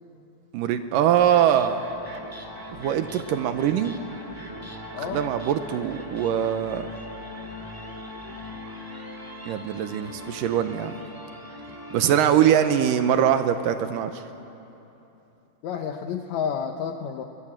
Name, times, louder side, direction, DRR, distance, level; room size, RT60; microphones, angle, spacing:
voice 1, 0.5-1.8 2.8-4.0 5.1-6.9 9.5-10.9 11.9-14.1, right 9 dB, 75° right, 9 dB, 2.2 m, -22 dB
sound 1, 1.0-13.3, left 1 dB, 10° right, 1.3 m, -40 dB
voice 2, 4.9-5.3 15.6-17.2, left 7 dB, 80° left, 5 dB, 1.6 m, -30 dB
23.0 x 21.5 x 8.9 m, 2.9 s
omnidirectional pair, 4.3 m